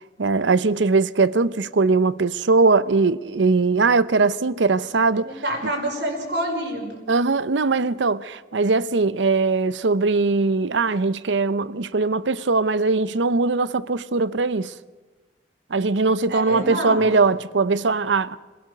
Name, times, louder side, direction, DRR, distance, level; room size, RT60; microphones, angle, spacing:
voice 1, 0.2-5.3 7.1-14.7 15.7-18.4, right 3 dB, 90° right, 0.7 m, -20 dB
voice 2, 5.2-7.0 16.3-17.1, right 1 dB, 70° right, 5.2 m, -27 dB
26.5 x 16.5 x 6.7 m
head